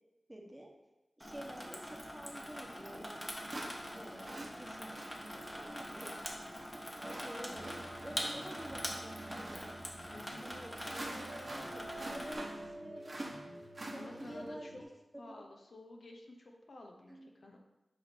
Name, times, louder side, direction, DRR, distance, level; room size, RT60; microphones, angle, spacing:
voice 1, 0.3-0.7 1.2-3.5 3.9-6.1 7.2-9.8 10.4-11.2 11.7-13.3 13.9-14.7 15.1-15.4 17.1-17.3, right 1 dB, 15° right, 0 dB, 1.2 m, -50 dB
Water tap faucet / Sink (filling or washing), 1.2-12.4, equal, 10° left, 1.2 m, -44 dB
sound 1, 2.6-2.7 3.5-14.5, right 1 dB, 40° right, 1.3 m, -47 dB
sound 2, 7.5-14.8, right 1 dB, 90° right, 1.2 m, -50 dB
voice 2, 10.1-10.5 13.9-14.8 15.2-17.6, left 1 dB, 65° left, 1 dB, 1.0 m, -51 dB
8.1 x 3.0 x 6.2 m, 1.0 s
wide cardioid pair, 85°, 0 cm